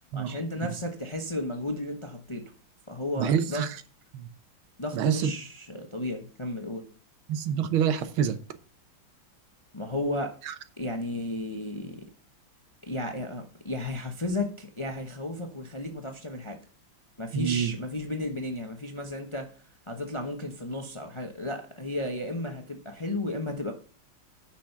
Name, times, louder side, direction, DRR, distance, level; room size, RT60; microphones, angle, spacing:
voice 1, 0.1-2.4 2.9-3.7 4.8-6.8 9.7-10.4 10.8-12.0 12.8-16.6 17.2-19.6 19.9-23.7, left 1 dB, 25° left, 0.7 m, -33 dB
voice 2, 3.2-3.7 4.1-4.3 4.9-5.3 7.3-8.4 10.5-10.6 17.3-17.7, right 8 dB, 80° right, 1.7 m, -26 dB
9.9 x 6.2 x 5.9 m
omnidirectional pair, 2.2 m